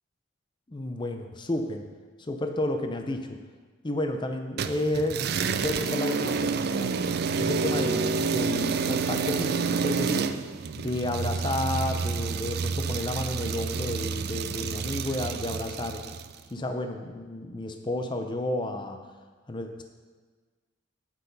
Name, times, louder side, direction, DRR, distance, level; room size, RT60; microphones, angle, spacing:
voice 1, 0.7-1.8 2.2-3.4 3.8-5.2 5.6-6.9 7.4-10.3 10.8-16.0 16.5-19.1 19.5-19.8, left 1 dB, 25° left, 6 dB, 0.6 m, -31 dB
sound 1, 4.6-16.3, right 5 dB, 50° right, 0.4 m, -29 dB
9.1 x 7.9 x 5.3 m, 1.4 s
head